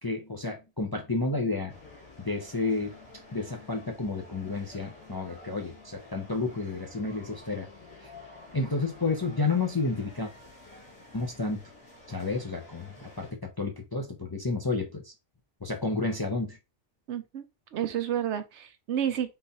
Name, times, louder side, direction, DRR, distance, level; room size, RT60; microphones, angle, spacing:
voice 1, 0.0-1.7 2.2-2.9 3.3-7.7 8.5-10.3 11.1-11.6 12.1-15.1 15.6-16.6, left 3 dB, 25° left, 0.5 m, -31 dB
sound 1, 1.7-13.3, left 2 dB, 60° left, 2.1 m, -50 dB
voice 2, 17.1-17.4 17.7-19.4, right 9 dB, 75° right, 0.9 m, -30 dB
3.9 x 2.6 x 3.9 m
omnidirectional pair, 1.2 m